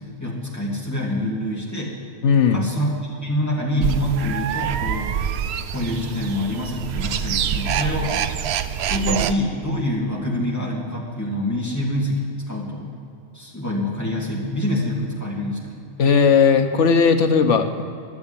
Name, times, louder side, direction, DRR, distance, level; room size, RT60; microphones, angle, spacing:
voice 1, 0.0-1.9 2.5-2.9 3.2-5.1 5.7-8.2 8.8-12.9 13.3-15.9, left 1 dB, 15° left, -4 dB, 2.7 m, -26 dB
voice 2, 2.2-2.6 16.0-17.8, left 6 dB, 90° left, 7 dB, 1.2 m, -16 dB
sound 1, 3.8-9.3, right 9 dB, 70° right, 0.8 m, -25 dB
12.5 x 6.9 x 9.9 m, 2.7 s
omnidirectional pair, 1.2 m